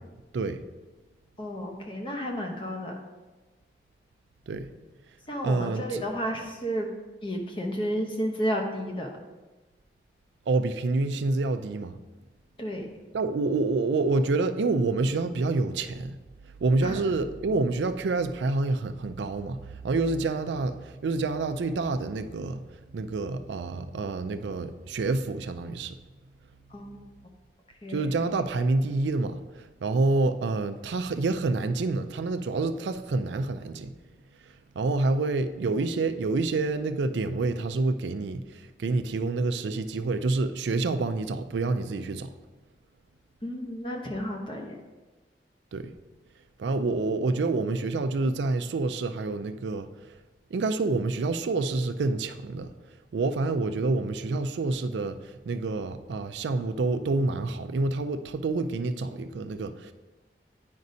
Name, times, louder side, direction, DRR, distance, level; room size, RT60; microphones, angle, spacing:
voice 1, 1.4-3.0 5.3-6.9 7.2-9.1 12.6-12.9 16.8-17.0 26.7-27.0 27.8-28.1 43.4-44.8, equal, 30° left, 1 dB, 0.8 m, -32 dB
voice 2, 5.4-6.0 10.5-12.0 13.1-16.2 16.6-22.6 22.9-26.0 27.9-33.9 34.8-42.3 45.7-45.9 46.6-50.1 50.5-52.7 53.1-59.9, right 3 dB, 85° right, 9 dB, 0.4 m, -28 dB
9.4 x 5.2 x 2.7 m, 1.2 s
head